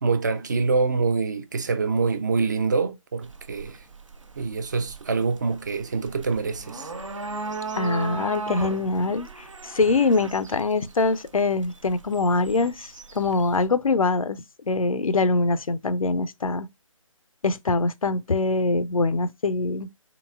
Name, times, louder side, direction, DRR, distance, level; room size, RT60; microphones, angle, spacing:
voice 1, 0.0-3.8 4.4-6.9, right 4 dB, 35° right, 0.4 m, -25 dB
sound 1, 3.2-13.7, right 3 dB, 65° right, 0.8 m, -37 dB
voice 2, 7.7-16.7 17.4-19.9, left 3 dB, 80° left, 0.5 m, -24 dB
3.8 x 3.5 x 2.3 m
figure-of-eight pair, 150°, 18 cm